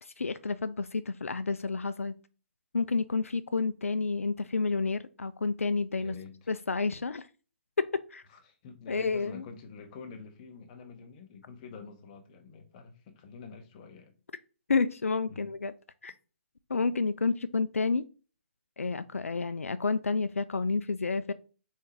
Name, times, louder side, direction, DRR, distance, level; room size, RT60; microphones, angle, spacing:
voice 1, 0.0-2.2 2.7-6.1 6.5-7.3 7.8-8.2 8.9-9.4 14.7-15.7 16.0-16.1 16.7-18.0 18.8-21.3, left 4 dB, 90° left, 0.3 m, -30 dB
voice 2, 6.0-6.5 8.3-14.1 15.3-15.5, left 5 dB, 35° left, 0.9 m, -47 dB
4.4 x 3.6 x 3.2 m
figure-of-eight pair, 140°, 7 cm